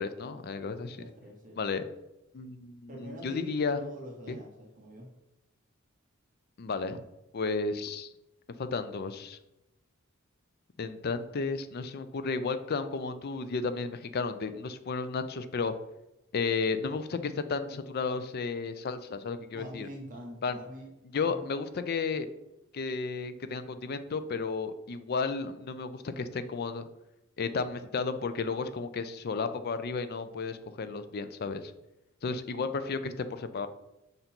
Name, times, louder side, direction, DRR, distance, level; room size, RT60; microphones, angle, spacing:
voice 1, 0.0-1.0 1.6-1.8 2.3-3.8 4.3-4.4 6.6-7.0 7.3-8.1 8.6-9.4 10.8-15.7 16.3-19.9 20.4-20.6 21.1-22.3 22.7-26.9 27.4-31.7 32.2-33.7, left 4 dB, 50° left, 11 dB, 0.4 m, -33 dB
voice 2, 0.9-1.6 2.9-5.1 19.5-20.9 21.2-21.4, equal, 40° right, 0 dB, 1.1 m, -44 dB
5.5 x 3.9 x 4.4 m, 0.92 s
head